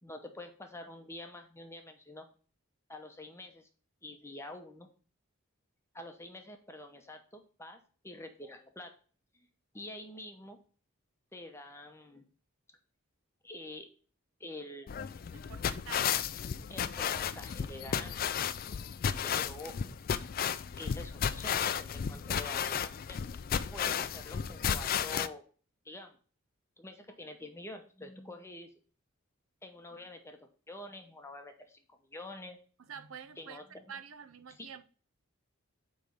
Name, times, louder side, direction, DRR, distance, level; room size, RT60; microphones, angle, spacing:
voice 1, 0.0-2.3 2.9-3.7 4.0-4.9 5.9-7.8 8.0-8.9 9.3-9.5 9.7-10.6 11.3-12.3 13.4-13.9 14.4-14.9 16.7-18.4 19.2-19.8 20.8-23.2 23.7-25.4 25.8-26.2 26.8-28.7 29.6-32.6 33.4-33.8 34.6-34.7, left 1 dB, 10° left, 0.8 m, -47 dB
sound 1, 14.9-25.3, left 8 dB, 45° left, 0.3 m, -33 dB
voice 2, 15.3-16.1 19.1-19.4 32.8-34.8, right 7 dB, 80° right, 0.6 m, -48 dB
8.3 x 3.2 x 5.4 m
head